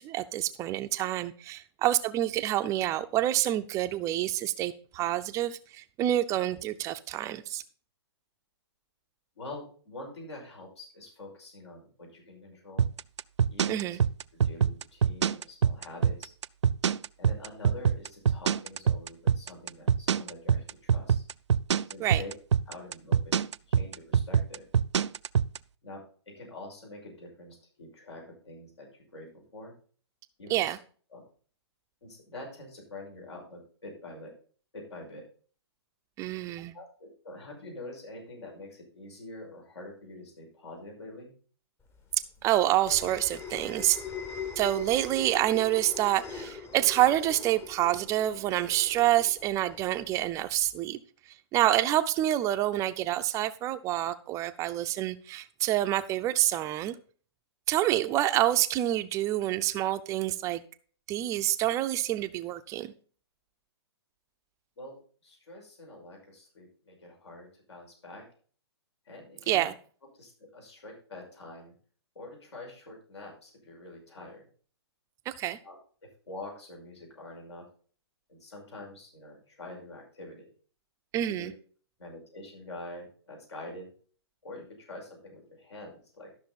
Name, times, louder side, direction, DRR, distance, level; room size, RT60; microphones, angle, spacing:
voice 1, 0.0-7.6 13.7-14.0 22.0-22.2 30.5-30.8 36.2-36.7 42.4-44.0 44.6-51.0 51.5-57.0 57.7-60.6 61.1-62.9 69.5-69.7 75.3-75.6 81.1-81.5, right 14 dB, 20° right, 11 dB, 0.5 m, -27 dB
voice 2, 9.4-12.9 13.5-13.9 14.3-16.3 17.2-21.2 21.9-22.3 22.7-23.4 23.7-24.7 25.8-28.9 29.1-29.3 29.5-29.7 30.4-30.7 31.1-31.2 32.0-34.3 34.7-35.2 36.6-41.3 64.8-65.0 65.2-68.2 69.1-69.7 70.2-71.7 72.2-74.4 75.6-75.7 76.3-77.6 78.3-80.5 81.4-81.5 82.0-83.9 84.4-86.3, left 2 dB, 75° left, 0 dB, 5.6 m, -45 dB
sound 1, 12.8-25.6, right 7 dB, 85° right, 0.4 m, -24 dB
sound 2, 41.9-50.8, left 5 dB, 15° left, 0.9 m, -42 dB
12.5 x 6.2 x 4.1 m, 0.42 s
hypercardioid pair, 135°, 14 cm